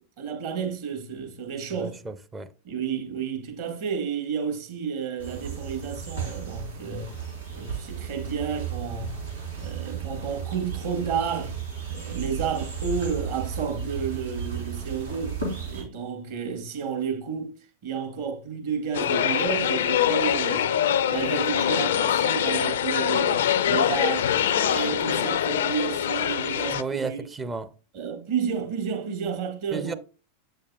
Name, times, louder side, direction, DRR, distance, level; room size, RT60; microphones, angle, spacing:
voice 1, 0.2-2.0 2.6-7.1 7.5-9.2 9.6-11.6 11.9-17.6 17.8-20.8 21.1-27.2 27.9-30.0, right 6 dB, 50° right, 1.6 m, -31 dB
voice 2, 1.7-2.5 26.7-27.7 29.7-29.9, right 4 dB, 15° right, 0.6 m, -33 dB
sound 1, 5.2-15.8, right 6 dB, 85° right, 3.0 m, -34 dB
sound 2, 18.9-26.8, left 9 dB, 60° left, 0.4 m, -24 dB
8.3 x 6.5 x 2.3 m
figure-of-eight pair, 90°, 0 cm